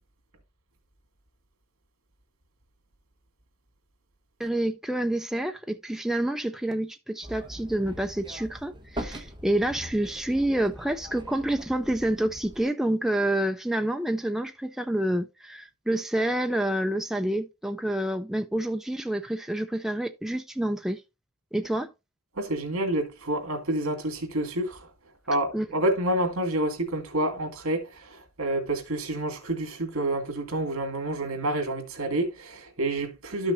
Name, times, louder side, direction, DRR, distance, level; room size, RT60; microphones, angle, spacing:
voice 1, 4.4-21.0 21.5-21.9 25.5-25.7, right 1 dB, ahead, 0.4 m, -28 dB
sound 1, 7.2-12.6, equal, 20° right, 1.1 m, -42 dB
voice 2, 22.4-24.8 25.3-33.5, right 1 dB, 70° right, 2.3 m, -28 dB
12.5 x 6.2 x 2.6 m
head